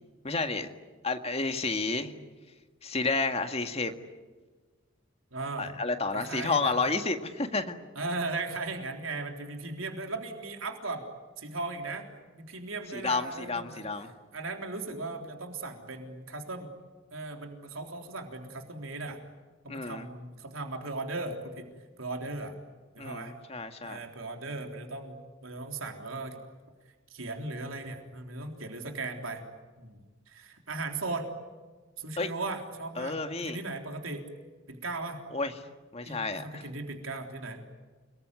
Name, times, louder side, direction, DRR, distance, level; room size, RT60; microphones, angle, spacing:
voice 1, 0.2-0.7 1.0-2.1 2.8-3.9 5.6-7.8 12.9-14.1 19.7-20.1 23.0-24.0 32.2-32.3 33.0-33.6 35.3-35.5 35.9-36.7, left 3 dB, 30° left, 6 dB, 1.9 m, -31 dB
voice 2, 5.3-5.7 6.1-6.9 8.0-11.0 11.4-12.1 12.3-13.9 14.3-16.7 17.1-19.2 19.6-21.7 22.0-22.5 22.9-23.3 23.8-26.4 27.1-29.4 29.8-30.0 30.3-31.3 32.0-34.3 34.7-35.2 36.1-37.6, right 3 dB, 85° right, 3 dB, 3.7 m, -37 dB
29.0 x 20.5 x 9.7 m, 1.3 s
head